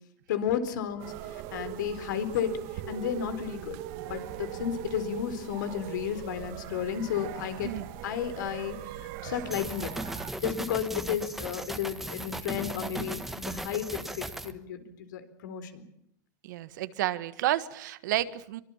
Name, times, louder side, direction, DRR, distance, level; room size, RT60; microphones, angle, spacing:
voice 1, 0.3-3.8 4.1-7.7 8.0-8.8 9.2-9.9 10.4-15.9, left 9 dB, 80° left, 11 dB, 4.1 m, -33 dB
sound 1, 1.0-10.3, right 13 dB, 50° right, 1.9 m, -40 dB
sound 2, 9.5-14.5, right 1 dB, 5° right, 1.2 m, -37 dB
voice 2, 16.4-18.6, right 14 dB, 75° right, 13 dB, 1.6 m, -30 dB
24.0 x 23.0 x 7.4 m, 0.70 s
supercardioid pair, 155°, 10 cm